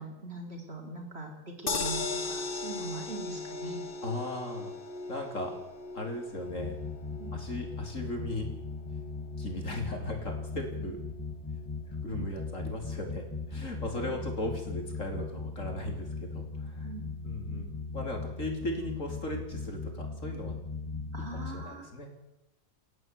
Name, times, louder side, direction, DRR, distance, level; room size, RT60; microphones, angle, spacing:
voice 1, 0.0-3.9 7.2-7.4 10.7-11.0 12.1-12.3 13.9-14.1 16.8-17.2 21.1-21.9, right 3 dB, 50° right, 2 dB, 4.6 m, -42 dB
sound 1, 1.7-13.9 14.3-14.4 14.7-14.8, left 3 dB, 40° left, 1.5 m, -40 dB
voice 2, 4.0-4.7 5.1-5.6 5.9-6.8 7.3-8.5 9.4-11.0 12.0-16.9 17.2-20.6 21.2-22.2, left 1 dB, 70° left, 2 dB, 4.8 m, -37 dB
sound 2, 6.5-21.7, left 4 dB, 15° left, 2.2 m, -38 dB
29.5 x 10.5 x 9.7 m, 0.93 s
omnidirectional pair, 1.4 m